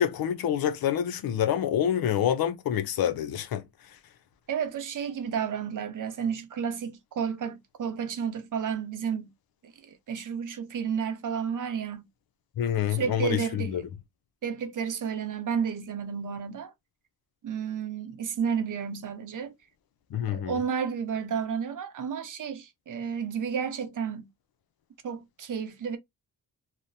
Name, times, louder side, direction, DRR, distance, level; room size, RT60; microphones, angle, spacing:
voice 1, 0.0-4.0 12.6-13.8 20.1-20.6, left 9 dB, 80° left, 0.6 m, -27 dB
voice 2, 4.5-9.3 9.6-12.0 12.9-13.8 14.4-16.7 17.4-19.5 20.3-24.3 25.0-26.0, right 7 dB, 60° right, 0.7 m, -31 dB
2.9 x 2.1 x 2.6 m
cardioid pair, 85°, 35 cm